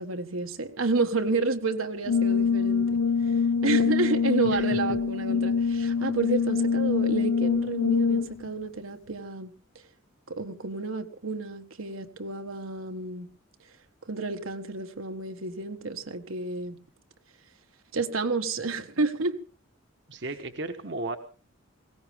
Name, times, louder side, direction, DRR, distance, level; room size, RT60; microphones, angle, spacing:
voice 1, 0.0-3.0 3.6-9.5 10.3-13.3 14.1-16.8 17.9-19.4, right 3 dB, 80° right, 1.5 m, -30 dB
Brass instrument, 2.1-8.5, left 5 dB, 85° left, 0.8 m, -25 dB
voice 2, 4.4-4.8 20.1-21.2, right 2 dB, 55° right, 1.2 m, -35 dB
20.0 x 17.5 x 3.5 m
head